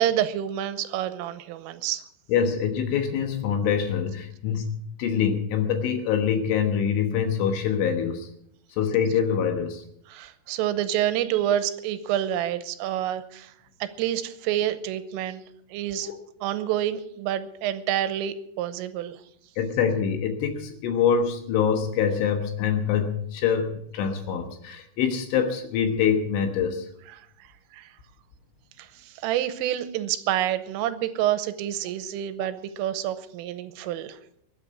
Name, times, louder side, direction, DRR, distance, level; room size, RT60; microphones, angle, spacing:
voice 1, 0.0-2.0 10.1-13.5 13.8-15.4 15.7-16.1 16.4-19.2 27.7-27.9 28.8-34.2, right 11 dB, 90° right, 12 dB, 3.4 m, -28 dB
voice 2, 2.3-8.3 8.8-9.8 16.1-16.2 19.6-26.9, left 7 dB, 75° left, 5 dB, 3.7 m, -25 dB
22.5 x 8.5 x 5.9 m, 0.71 s
omnidirectional pair, 5.8 m